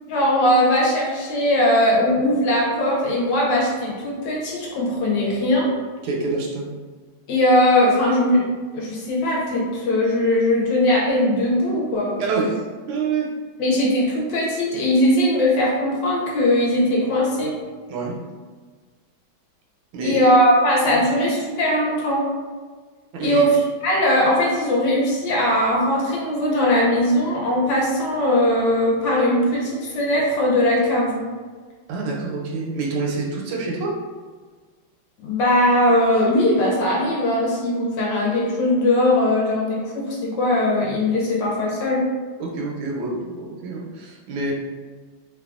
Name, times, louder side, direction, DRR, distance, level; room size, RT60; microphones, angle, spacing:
voice 1, 0.1-5.7 7.3-8.4 8.7-12.2 13.6-17.5 20.0-22.2 23.2-31.2 35.2-42.0, left 1 dB, 70° left, -4 dB, 1.3 m, -20 dB
voice 2, 6.0-6.7 12.2-13.3 17.9-18.2 19.9-20.2 20.9-21.0 23.1-23.5 31.9-34.0 42.4-44.5, right 3 dB, 80° right, -1 dB, 1.4 m, -27 dB
3.3 x 2.2 x 2.4 m, 1.5 s
omnidirectional pair, 2.2 m